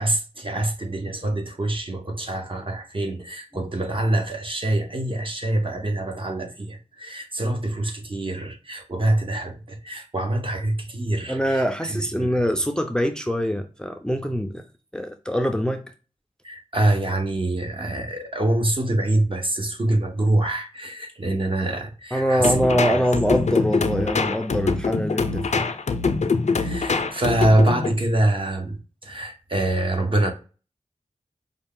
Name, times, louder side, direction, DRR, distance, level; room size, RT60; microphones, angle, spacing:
voice 1, 0.0-12.4 16.4-23.0 26.5-30.3, right 1 dB, 45° right, 1.1 m, -25 dB
voice 2, 11.3-14.6 14.9-15.8 22.1-25.6, equal, 5° left, 0.5 m, -24 dB
sound 1, 22.4-27.9, left 4 dB, 65° left, 0.5 m, -24 dB
5.2 x 2.3 x 3.6 m
wide cardioid pair, 65°, 13 cm